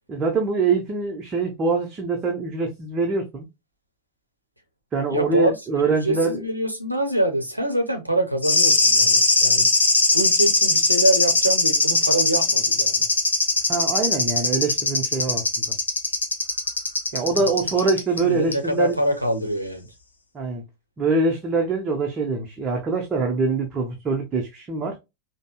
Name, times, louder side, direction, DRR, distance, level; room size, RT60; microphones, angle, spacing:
voice 1, 0.1-3.5 4.9-6.4 13.7-15.7 17.1-19.0 20.3-20.6 21.0-25.0, right 4 dB, 25° right, 0.8 m, -24 dB
voice 2, 5.1-5.6 6.0-9.7 10.1-13.0 17.1-17.7 18.2-19.8, right 1 dB, 90° right, 0.7 m, -25 dB
sound 1, 8.4-18.2 18.5-18.6, left 3 dB, 75° left, 0.7 m, -20 dB
5.2 x 2.1 x 2.3 m
figure-of-eight pair, 90°, 0 cm